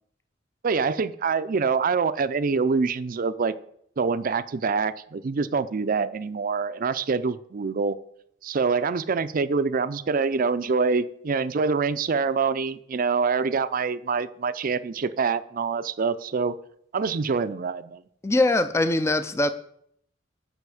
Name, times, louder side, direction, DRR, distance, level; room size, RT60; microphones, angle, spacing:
voice 1, 0.6-3.5 4.0-8.0 8.4-16.6 16.9-18.0, right 5 dB, 50° right, 0.5 m, -25 dB
voice 2, 18.2-19.5, left 2 dB, 15° left, 0.4 m, -22 dB
8.1 x 5.8 x 7.0 m
head